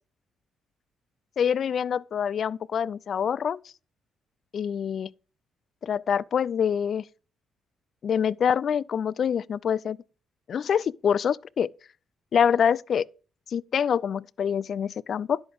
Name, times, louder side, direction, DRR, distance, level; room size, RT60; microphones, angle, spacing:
voice 1, 1.4-3.6 4.5-5.1 5.8-7.0 8.0-10.0 10.5-11.7 12.3-13.1 13.5-15.4, left 7 dB, 55° left, 0.3 m, -25 dB
10.5 x 7.8 x 3.5 m
cardioid pair, 90°, 0 cm